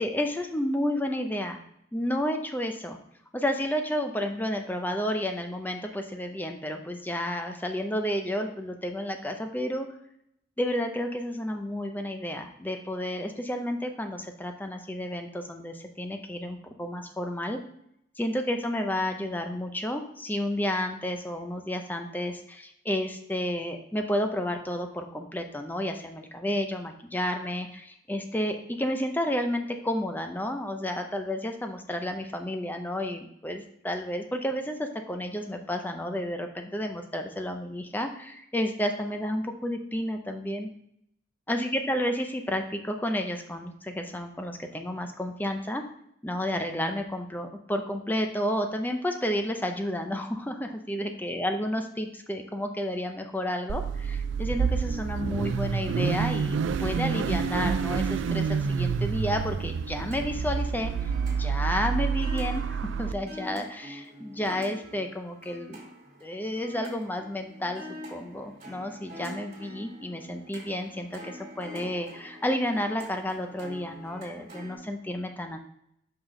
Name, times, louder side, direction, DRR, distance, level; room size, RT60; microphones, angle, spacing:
voice 1, 0.0-1.6 1.9-3.0 3.3-9.9 10.6-17.6 18.2-40.7 41.5-45.8 46.2-61.1 61.4-65.9 66.2-67.8 68.1-75.6, left 1 dB, 10° left, 5 dB, 0.5 m, -31 dB
Car / Idling / Accelerating revving vroom, 53.7-63.1, right 6 dB, 85° right, 0.4 m, -28 dB
sound 1, 59.9-74.8, equal, 45° right, 2.2 m, -45 dB
5.7 x 5.0 x 3.8 m, 0.75 s
head